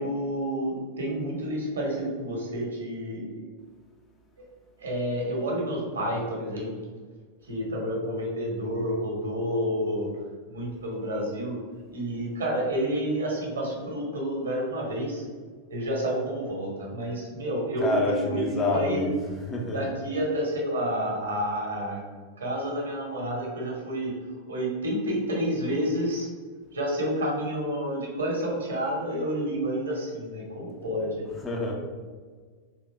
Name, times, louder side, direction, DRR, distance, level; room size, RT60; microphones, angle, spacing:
voice 1, 0.0-3.5 4.4-4.5 4.8-6.7 7.4-10.1 10.5-11.6 11.9-15.2 15.7-19.0 19.7-22.0 22.4-24.2 24.5-26.3 26.7-31.2, equal, 70° right, -2 dB, 1.2 m, -29 dB
voice 2, 17.8-19.1 19.5-19.8 31.4-31.8, left 2 dB, 20° left, -1 dB, 0.7 m, -27 dB
3.7 x 2.9 x 3.3 m, 1.5 s
figure-of-eight pair, 90°, 0 cm